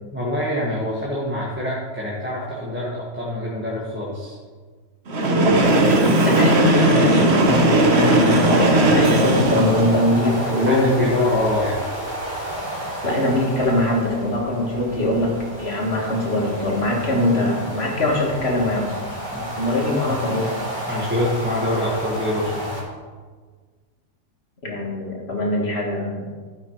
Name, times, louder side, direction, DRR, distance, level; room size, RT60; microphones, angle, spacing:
voice 1, 0.1-4.4 10.1-11.8 19.3-19.4 20.0-20.2 20.9-22.7, left 1 dB, 10° right, -6 dB, 1.3 m, -25 dB
Train, 5.1-10.1, right 1 dB, 50° right, 1.3 m, -17 dB
voice 2, 6.2-11.1 13.0-15.3 15.6-18.9 19.6-20.5 24.6-26.2, left 1 dB, 45° left, -2 dB, 1.9 m, -22 dB
sound 1, 7.4-22.8, right 1 dB, 30° right, 2.3 m, -32 dB
12.0 x 5.7 x 4.6 m, 1.5 s
omnidirectional pair, 1.5 m